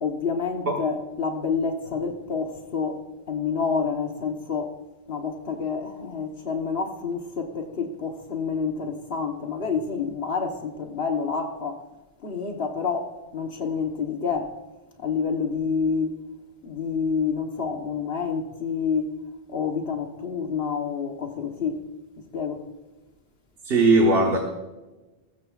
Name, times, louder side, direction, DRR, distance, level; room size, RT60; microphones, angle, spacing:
voice 1, 0.0-3.0 3.3-4.7 5.1-11.8 12.2-14.5 15.0-16.2 16.6-19.1 19.5-21.8 22.3-22.6, left 5 dB, 75° left, 1.4 m, -28 dB
voice 2, 23.6-24.4, right 2 dB, 70° right, 1.6 m, -18 dB
19.5 x 15.0 x 2.4 m
omnidirectional pair, 1.0 m